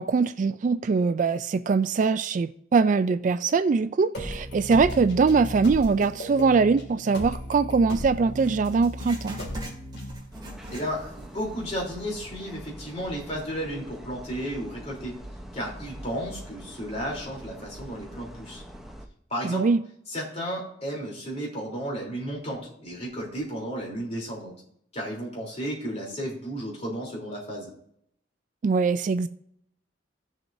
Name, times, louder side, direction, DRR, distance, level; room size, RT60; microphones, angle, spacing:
voice 1, 0.0-9.4 19.4-19.8 28.6-29.3, right 4 dB, 40° right, 0.3 m, -22 dB
sound 1, 4.1-10.1, equal, 60° left, 2.3 m, -36 dB
Writing, 8.3-11.3 11.7-11.8 12.5-12.6, right 1 dB, 20° right, 2.2 m, -42 dB
sound 2, 10.3-19.1, equal, ahead, 0.8 m, -43 dB
voice 2, 10.7-15.1 15.5-18.6 19.3-19.7 20.1-24.5 24.9-27.7, equal, 35° left, 3.4 m, -33 dB
16.5 x 7.4 x 2.7 m
head